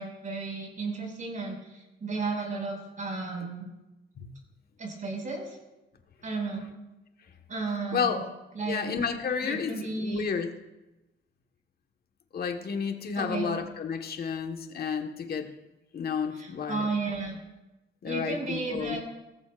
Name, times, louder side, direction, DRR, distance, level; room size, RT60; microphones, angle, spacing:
voice 1, 0.0-3.7 4.8-5.6 6.2-6.7 7.5-8.2 8.5-8.9 9.4-10.3 13.1-13.4 16.3-17.4 18.0-19.0, right 3 dB, 40° right, 0 dB, 5.9 m, -33 dB
voice 2, 7.9-8.3 8.7-10.5 12.3-15.5 15.9-16.8 18.0-19.0, left 6 dB, 50° left, 4 dB, 1.5 m, -31 dB
19.0 x 14.5 x 2.6 m, 1.0 s
cardioid pair, 90°, 20 cm